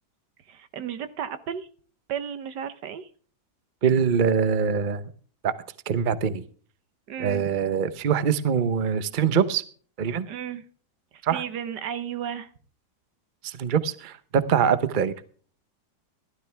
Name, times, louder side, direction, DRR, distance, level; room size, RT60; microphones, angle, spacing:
voice 1, 0.5-1.7 2.1-3.1 7.1-7.5 10.2-10.6 11.1-12.5, right 9 dB, 85° right, 13 dB, 1.7 m, -34 dB
voice 2, 3.8-5.0 5.4-5.5 5.9-6.4 7.2-9.6 10.0-10.3 11.2-11.4 13.4-15.1, right 7 dB, 40° right, 14 dB, 0.8 m, -23 dB
15.5 x 13.0 x 3.4 m, 0.42 s
omnidirectional pair, 1.8 m